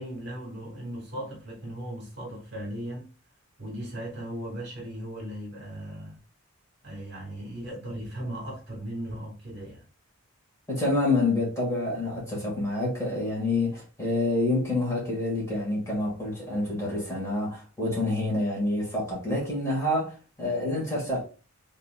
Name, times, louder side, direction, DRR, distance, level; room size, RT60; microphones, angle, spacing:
voice 1, 0.0-3.1 3.6-6.2 6.8-9.8, right 1 dB, 50° right, 2.3 m, -37 dB
voice 2, 10.7-21.2, left 2 dB, 15° left, 2.1 m, -27 dB
4.0 x 3.8 x 2.5 m
head